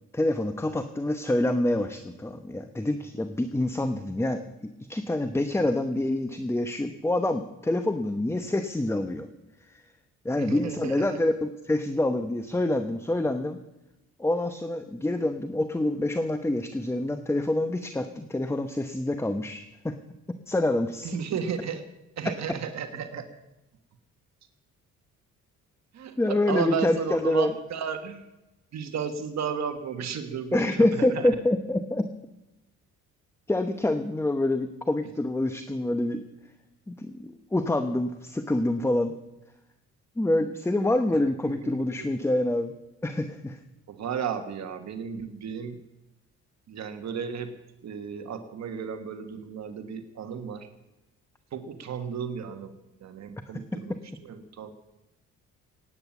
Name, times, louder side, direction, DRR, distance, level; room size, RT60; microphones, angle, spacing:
voice 1, 0.1-9.3 9.7-9.8 10.2-13.6 14.2-20.0 20.5-21.1 26.2-27.5 30.5-32.1 33.5-36.2 36.9-39.1 40.2-42.7 43.0-43.6, left 1 dB, 10° left, 9 dB, 0.9 m, -26 dB
voice 2, 10.4-11.2 21.0-21.8 22.2-23.3 25.9-28.2 28.7-31.3 41.4-41.7 42.0-42.1 43.9-45.8 46.7-47.5 47.8-50.7 51.5-52.7 53.0-54.7, right 7 dB, 65° right, 8 dB, 1.5 m, -34 dB
18.0 x 9.0 x 7.3 m, 0.97 s
cardioid pair, 90°, 30 cm